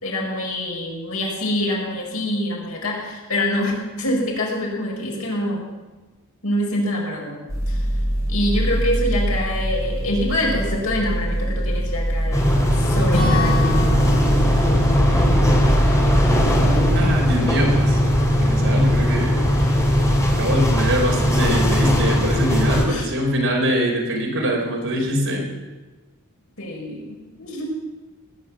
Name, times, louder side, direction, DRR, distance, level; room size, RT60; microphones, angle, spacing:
voice 1, 0.0-5.7 6.4-7.4 7.7-7.8 8.3-13.9 22.9-23.1 26.6-27.6, left 1 dB, 75° left, -2 dB, 5.4 m, -25 dB
sound 1, 7.5-17.1, equal, 15° right, 5.1 m, -23 dB
sound 2, 12.3-22.9, equal, 15° left, 2.7 m, -19 dB
Acoustic guitar / Strum, 13.1-17.1, left 1 dB, 60° left, 7.2 m, -28 dB
voice 2, 16.9-19.8 20.4-25.5, equal, 60° right, 0 dB, 4.3 m, -24 dB
19.0 x 10.5 x 7.4 m, 1.2 s
head